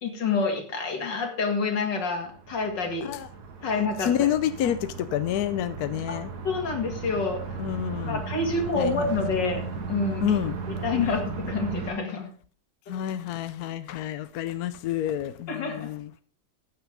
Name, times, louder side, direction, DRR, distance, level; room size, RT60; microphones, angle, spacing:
voice 1, 0.0-3.1 3.6-4.1 4.6-4.7 6.1-6.2 6.4-7.4 8.0-10.3 10.8-12.3 15.5-15.9, left 4 dB, 90° left, 2.9 m, -28 dB
sound 1, 2.1-11.9, right 5 dB, 65° right, 1.9 m, -36 dB
voice 2, 4.0-6.3 7.6-8.2 8.8-9.1 10.2-10.6 12.9-16.1, left 10 dB, 70° left, 1.1 m, -28 dB
14.5 x 9.4 x 3.6 m
omnidirectional pair, 1.9 m